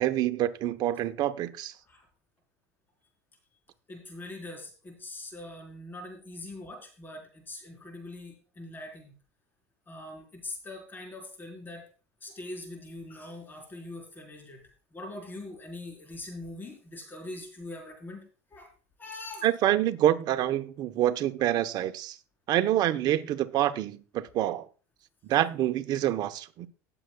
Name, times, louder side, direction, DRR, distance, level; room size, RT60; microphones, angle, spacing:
voice 1, 0.0-1.7 19.4-22.2 22.5-24.7 25.3-26.7, right 12 dB, 50° right, 0.9 m, -26 dB
voice 2, 3.9-9.1 9.9-11.8 12.2-14.6 14.9-18.2 18.5-18.7 19.0-19.5, left 2 dB, 25° left, 4.1 m, -42 dB
19.0 x 7.8 x 2.3 m
supercardioid pair, 100°, 9 cm